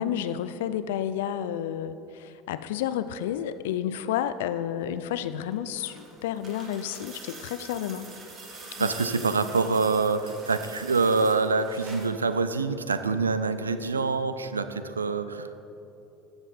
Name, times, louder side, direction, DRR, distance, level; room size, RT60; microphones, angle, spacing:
voice 1, 0.0-8.1 8.8-8.9, left 10 dB, 70° left, 13 dB, 0.3 m, -31 dB
sound 1, 5.4-12.2 13.5-13.6, right 3 dB, 40° right, 1.6 m, -44 dB
voice 2, 8.8-15.6, right 4 dB, 90° right, 11 dB, 0.4 m, -26 dB
14.0 x 5.2 x 4.1 m, 3.0 s
hypercardioid pair, 75°, 0 cm